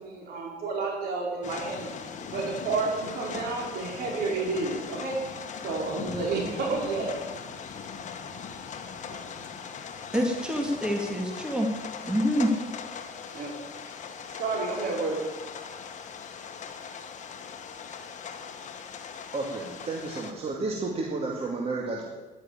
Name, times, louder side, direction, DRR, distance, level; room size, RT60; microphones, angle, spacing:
voice 1, 0.0-1.9 2.3-5.2 5.6-7.1 9.1-9.2 13.3-13.5 13.9-14.0 14.4-15.2, right 3 dB, 65° right, -1 dB, 5.0 m, -30 dB
sound 1, 1.4-20.3, left 6 dB, 45° left, 1.6 m, -40 dB
voice 2, 10.1-11.7 12.0-12.5, equal, 5° right, 1 dB, 2.3 m, -26 dB
voice 3, 19.3-22.0, right 3 dB, 35° right, -1 dB, 2.2 m, -31 dB
11.0 x 10.5 x 8.9 m, 1.2 s
cardioid pair, 110°, 17 cm